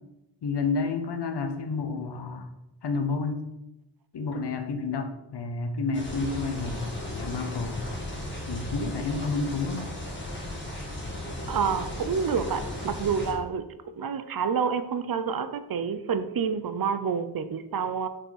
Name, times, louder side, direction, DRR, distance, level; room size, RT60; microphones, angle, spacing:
voice 1, 0.4-2.5 2.8-3.4 4.1-7.8 8.5-9.9, left 4 dB, 70° left, 7 dB, 0.9 m, -30 dB
sound 1, 5.9-13.3, left 1 dB, 25° left, 1.9 m, -36 dB
voice 2, 11.5-13.7 14.0-18.1, right 6 dB, 55° right, 11 dB, 0.6 m, -28 dB
6.3 x 5.5 x 4.0 m, 0.92 s
wide cardioid pair, 130°, 42 cm